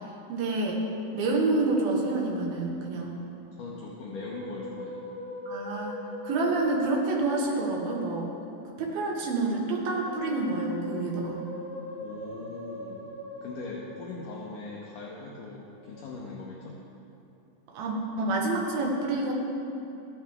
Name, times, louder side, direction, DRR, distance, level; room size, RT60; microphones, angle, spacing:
voice 1, 0.3-0.8 1.1-3.2 5.5-6.0 6.2-8.3 8.8-11.5 17.7-19.3, right 2 dB, 65° right, -2 dB, 3.0 m, -28 dB
voice 2, 3.5-5.1 12.0-13.1 13.4-16.8, left 3 dB, 75° left, -3 dB, 2.0 m, -40 dB
Musical instrument, 3.8-8.4 9.7-14.6 15.7-16.1, equal, 20° right, 1.4 m, -42 dB
15.0 x 11.0 x 3.5 m, 2.9 s
omnidirectional pair, 4.9 m